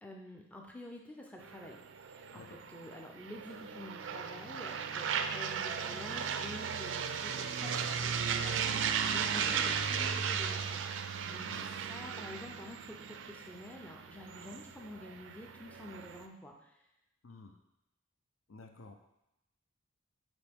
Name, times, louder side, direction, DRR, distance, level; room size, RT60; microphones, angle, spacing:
voice 1, 0.0-2.4 2.7-8.8 9.0-11.6 11.9-16.7, left 1 dB, 5° left, 1 dB, 0.5 m, -49 dB
sound 1, 1.4-16.3, right 7 dB, 60° right, 0.4 m, -36 dB
voice 2, 2.3-2.6 11.4-11.7 17.2-17.6 18.5-18.9, left 3 dB, 75° left, 5 dB, 0.7 m, -52 dB
9.3 x 3.1 x 3.5 m, 0.86 s
head